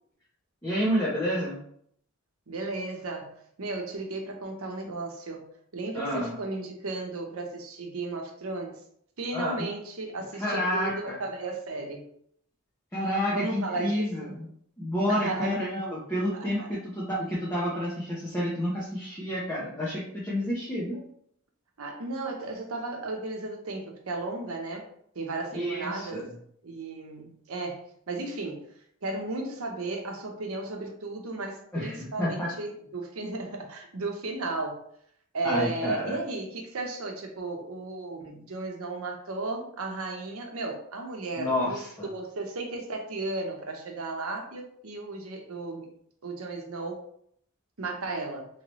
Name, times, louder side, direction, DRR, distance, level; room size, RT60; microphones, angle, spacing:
voice 1, 0.6-1.6 5.9-6.3 9.3-9.7 10.4-11.2 12.9-14.5 14.8-21.0 25.5-26.2 31.7-32.5 35.4-36.2 41.4-42.1, equal, 10° left, -7 dB, 0.7 m, -29 dB
voice 2, 2.5-5.5 5.7-8.8 9.2-12.0 13.3-14.4 15.1-15.6 16.3-16.7 21.8-24.9 25.1-26.3 26.6-28.7 29.0-34.8 35.3-45.9 46.2-47.0 47.8-48.5, right 2 dB, 80° right, 2 dB, 0.8 m, -35 dB
3.1 x 2.9 x 3.0 m, 0.67 s
head